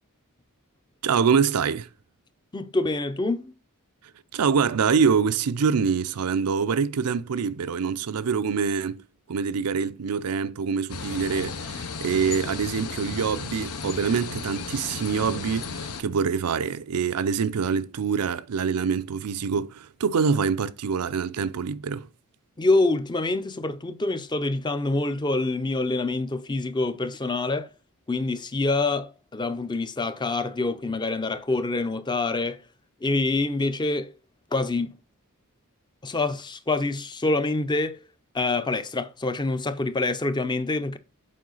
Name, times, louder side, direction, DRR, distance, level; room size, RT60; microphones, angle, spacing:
voice 1, 1.0-1.9 4.3-9.0 9.3-22.1, right 6 dB, 90° right, 0.5 m, -25 dB
voice 2, 2.5-3.5 22.6-27.7 28.1-32.6 33.0-34.1 34.5-34.9 36.0-38.0 38.3-41.0, left 2 dB, 20° left, 0.5 m, -26 dB
sound 1, 10.9-16.0, left 5 dB, 85° left, 0.9 m, -34 dB
7.6 x 4.7 x 3.9 m
head